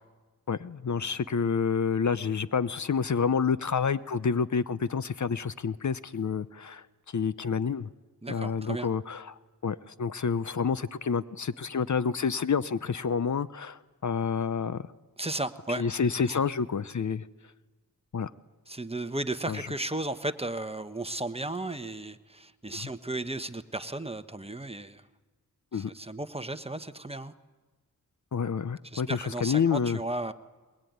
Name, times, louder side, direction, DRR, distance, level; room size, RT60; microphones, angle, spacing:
voice 1, 0.5-7.9 8.3-9.3 9.6-14.9 15.8-17.3 18.1-18.3 19.5-19.7 22.7-22.9 25.7-25.9 28.3-30.0, left 6 dB, 55° left, 15 dB, 0.7 m, -29 dB
voice 2, 8.2-8.9 15.2-15.8 16.3-16.4 18.7-25.0 25.7-27.3 28.9-30.3, right 2 dB, 15° right, 10 dB, 1.1 m, -34 dB
21.5 x 21.0 x 9.4 m, 1.3 s
wide cardioid pair, 60°, 35 cm